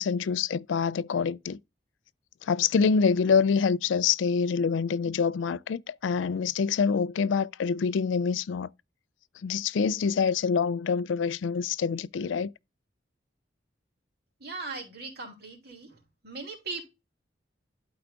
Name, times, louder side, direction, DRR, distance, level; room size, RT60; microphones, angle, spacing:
voice 1, 0.0-1.6 2.5-8.7 9.4-12.5, left 6 dB, 90° left, 0.4 m, -26 dB
voice 2, 14.4-16.8, right 3 dB, 60° right, 2.8 m, -39 dB
12.0 x 4.8 x 2.4 m
head